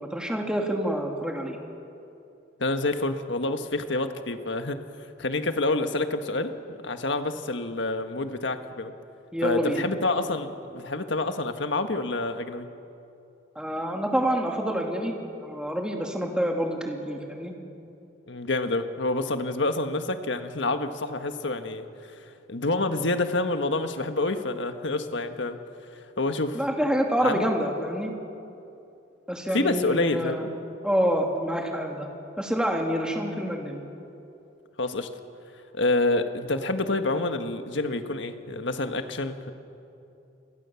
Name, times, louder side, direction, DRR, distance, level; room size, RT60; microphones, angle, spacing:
voice 1, 0.1-1.6 9.3-9.9 13.6-15.2 15.4-17.5 26.5-28.1 29.3-30.5 30.8-32.1 32.4-33.8, equal, 5° right, 1 dB, 2.5 m, -27 dB
voice 2, 2.6-4.8 5.2-8.9 9.4-12.7 18.3-21.8 22.5-25.6 26.2-26.6 27.2-27.4 29.5-30.5 34.8-35.1 35.7-39.5, left 2 dB, 70° left, 7 dB, 1.5 m, -27 dB
28.0 x 23.0 x 7.1 m, 2.8 s
head